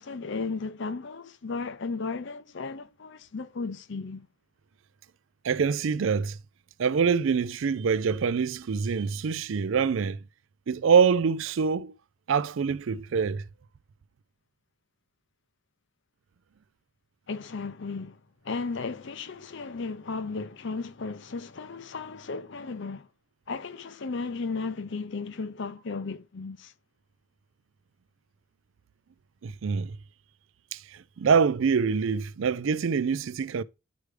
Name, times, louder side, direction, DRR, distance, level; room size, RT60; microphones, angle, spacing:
voice 1, 0.0-4.3 17.3-23.1 23.5-26.7, left 4 dB, 55° left, 0.6 m, -35 dB
voice 2, 5.4-6.4 6.8-10.2 10.7-11.9 12.3-13.4 29.4-30.0 30.7-33.6, right 6 dB, 65° right, 0.4 m, -25 dB
10.5 x 4.8 x 3.2 m
head